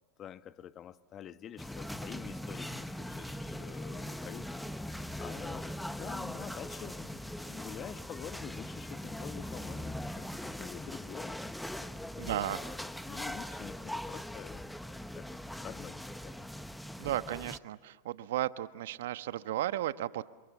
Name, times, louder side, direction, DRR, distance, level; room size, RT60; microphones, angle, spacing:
voice 1, 0.2-7.2 7.5-11.5 11.8-12.4 13.1-14.7 15.1-16.5, left 10 dB, 35° left, 1.2 m, -47 dB
sound 1, 1.6-17.6, left 1 dB, 5° left, 1.1 m, -41 dB
voice 2, 12.1-12.6 17.0-20.3, right 13 dB, 75° right, 1.2 m, -34 dB
28.5 x 28.0 x 7.3 m
hypercardioid pair, 105°, 0 cm